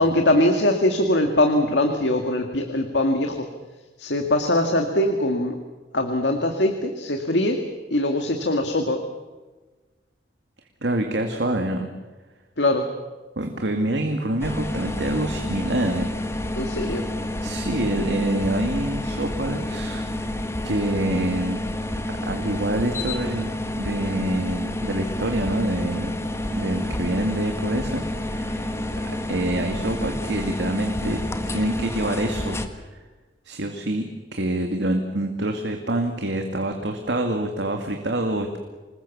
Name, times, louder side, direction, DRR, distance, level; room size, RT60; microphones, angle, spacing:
voice 1, 0.0-3.5 4.0-5.5 5.9-7.6 7.9-9.0 12.6-12.9 16.6-17.0, left 1 dB, 80° left, 4 dB, 2.1 m, -22 dB
voice 2, 10.8-11.9 13.4-16.1 17.4-20.0 20.6-21.6 22.2-23.5 23.8-26.1 26.4-28.7 29.0-31.2 31.5-32.6 32.9-33.0 33.4-38.6, right 1 dB, 80° right, 4 dB, 2.2 m, -26 dB
sound 1, 14.4-32.7, left 1 dB, 15° left, 1.6 m, -29 dB
26.5 x 21.0 x 7.2 m, 1.3 s
head